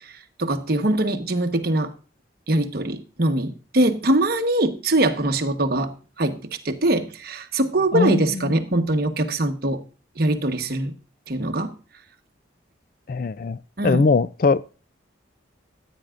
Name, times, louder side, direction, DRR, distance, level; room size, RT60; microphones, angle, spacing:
voice 1, 0.0-1.9 2.5-9.8 10.2-10.9 11.3-11.8 13.8-14.1, right 1 dB, 50° right, 1.1 m, -23 dB
voice 2, 7.9-8.5 13.1-13.6 13.8-14.6, left 4 dB, 45° left, 0.4 m, -21 dB
14.5 x 9.2 x 2.5 m
head